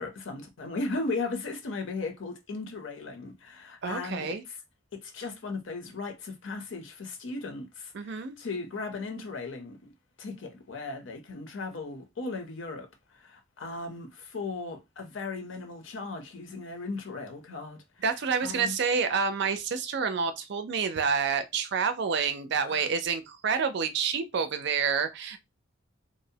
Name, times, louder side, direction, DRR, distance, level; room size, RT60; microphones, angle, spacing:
voice 1, 0.0-4.6 5.0-9.9 10.2-18.0 18.4-18.8 22.7-22.9, left 3 dB, 75° left, 0.6 m, -37 dB
voice 2, 3.8-4.4 7.9-8.4 18.0-25.4, right 6 dB, 60° right, 0.4 m, -28 dB
2.6 x 2.0 x 2.7 m
head